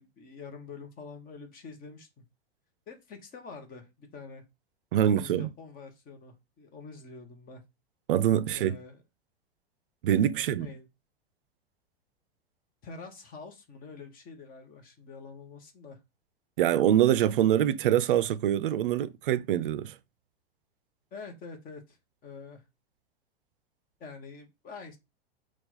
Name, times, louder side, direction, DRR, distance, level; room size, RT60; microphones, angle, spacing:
voice 1, 0.0-2.2 2.9-4.4 5.0-7.6 8.5-9.0 10.5-10.9 12.8-16.0 21.1-22.6 24.0-25.0, left 4 dB, 25° left, 1.0 m, -46 dB
voice 2, 4.9-5.5 8.1-8.7 10.0-10.7 16.6-19.9, right 11 dB, 55° right, 0.5 m, -24 dB
4.4 x 2.4 x 4.0 m
figure-of-eight pair, 95°, 32 cm